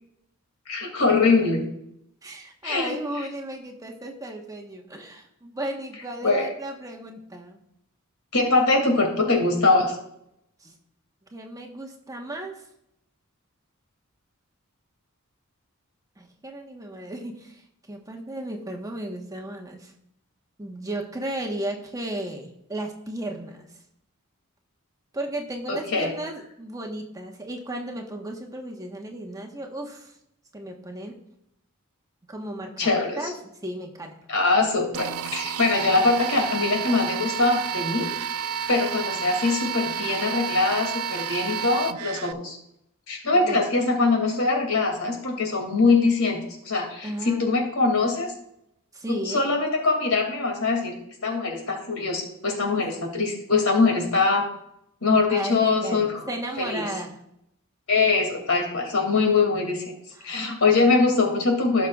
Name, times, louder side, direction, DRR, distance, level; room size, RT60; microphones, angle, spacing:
voice 1, 0.7-1.6 2.6-3.3 6.2-6.5 8.3-10.0 25.7-26.1 32.8-33.2 34.3-38.1 38.4-42.6 43.1-46.4 46.6-48.3 49.1-50.9 51.2-54.5 55.0-56.3 56.6-56.9 57.9-59.8 60.2-61.9, left 3 dB, 90° left, 2 dB, 2.5 m, -23 dB
voice 2, 2.2-7.6 10.6-10.7 11.3-12.6 16.2-17.6 17.9-19.9 20.6-23.7 25.1-30.1 30.5-31.1 32.3-33.3 33.6-34.1 43.4-43.6 47.0-47.5 47.9-48.1 48.9-49.5 52.8-52.9 55.3-57.2 60.2-60.5, right 1 dB, 15° right, 1 dB, 1.2 m, -35 dB
sound 1, 34.9-42.3, right 8 dB, 80° right, 0.4 m, -30 dB
16.5 x 6.2 x 2.4 m, 0.77 s
head